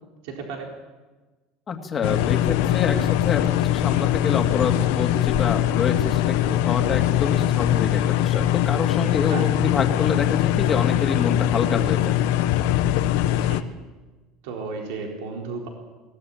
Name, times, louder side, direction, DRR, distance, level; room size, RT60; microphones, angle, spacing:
voice 1, 0.2-0.7 9.3-9.5 13.2-13.6 14.4-15.7, right 4 dB, 80° right, 1 dB, 4.1 m, -34 dB
voice 2, 1.7-12.2, left 5 dB, 25° left, 4 dB, 2.5 m, -27 dB
sound 1, 2.0-13.6, left 12 dB, 80° left, 1.2 m, -22 dB
22.5 x 18.5 x 8.8 m, 1.2 s
cardioid pair, 155°, 0 cm